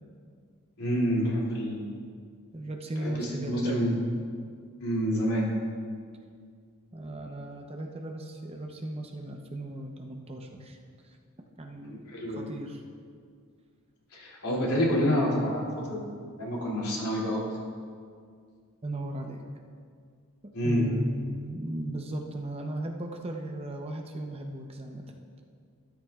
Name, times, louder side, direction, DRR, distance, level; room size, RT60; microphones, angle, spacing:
voice 1, 0.8-1.9 3.0-3.9 4.8-5.5 11.9-12.4 14.1-16.1 16.4-17.4 20.5-20.9, equal, 80° left, -4 dB, 2.8 m, -28 dB
voice 2, 2.5-3.8 6.9-10.8 11.6-12.8 18.8-19.4 20.6-25.0, right 1 dB, 25° right, 2 dB, 0.8 m, -36 dB
13.5 x 13.0 x 2.4 m, 2.1 s
head